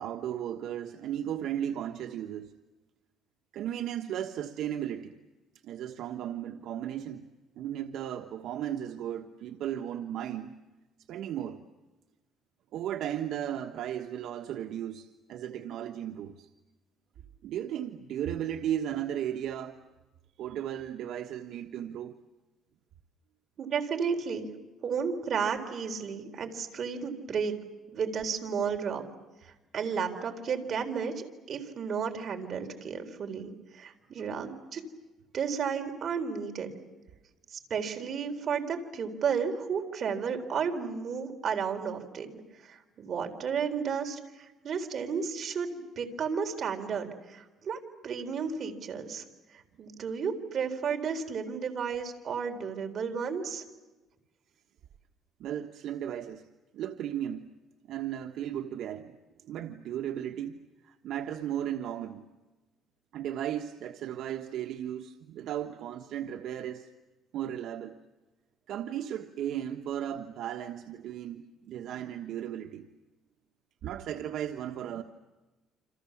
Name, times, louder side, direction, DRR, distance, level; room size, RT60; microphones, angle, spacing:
voice 1, 0.0-2.5 3.5-5.2 5.6-7.3 7.6-10.5 11.1-11.6 12.7-16.5 17.4-19.8 20.4-22.2 55.4-56.4 56.7-57.5 57.9-59.2 59.4-62.2 63.1-66.9 67.3-68.0 68.7-72.8 73.8-75.0, right 10 dB, 65° right, 1.3 m, -35 dB
voice 2, 23.6-24.5 24.8-27.5 27.9-29.0 29.4-34.8 35.3-36.7 37.5-49.2 49.5-53.6, right 6 dB, 40° right, 4.0 m, -33 dB
29.0 x 27.0 x 7.2 m
cardioid pair, 155°, 0 cm